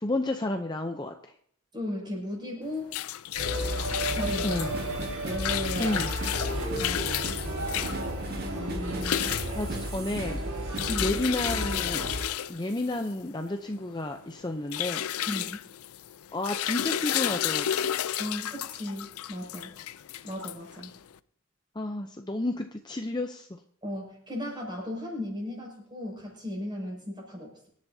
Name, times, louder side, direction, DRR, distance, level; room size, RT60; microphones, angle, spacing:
voice 1, 0.0-1.3 4.4-4.7 5.8-6.1 8.5-9.2 9.5-10.4 11.0-12.1 12.5-15.1 16.3-17.8 21.8-23.5, left 2 dB, 20° left, 5 dB, 0.6 m, -31 dB
voice 2, 1.7-2.9 4.1-4.6 5.2-6.0 6.8-7.2 10.9-11.2 15.3-15.7 18.2-19.8 20.2-20.9 23.8-27.7, left 1 dB, 20° right, -2 dB, 6.4 m, -36 dB
sound 1, 2.6-21.1, left 11 dB, 85° left, 0.5 m, -33 dB
sound 2, 3.3-12.2, equal, 85° right, 4.8 m, -33 dB
sound 3, 4.1-10.8, right 2 dB, 45° right, 1.9 m, -39 dB
25.5 x 10.5 x 2.8 m, 0.63 s
head